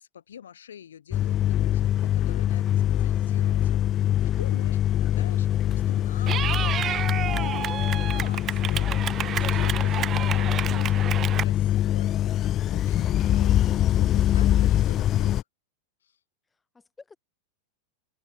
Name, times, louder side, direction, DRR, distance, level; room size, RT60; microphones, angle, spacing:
voice 1, 0.0-15.4 16.0-16.2, left 9 dB, 65° left, 2.7 m, -45 dB
sound 1, 1.1-15.4, left 12 dB, 30° left, 0.4 m, -23 dB
Clapping / Cheering, 6.3-11.4, right 10 dB, 25° right, 0.6 m, -30 dB
voice 2, 16.5-17.2, left 4 dB, 10° left, 6.2 m, -54 dB
figure-of-eight pair, 90°, 0 cm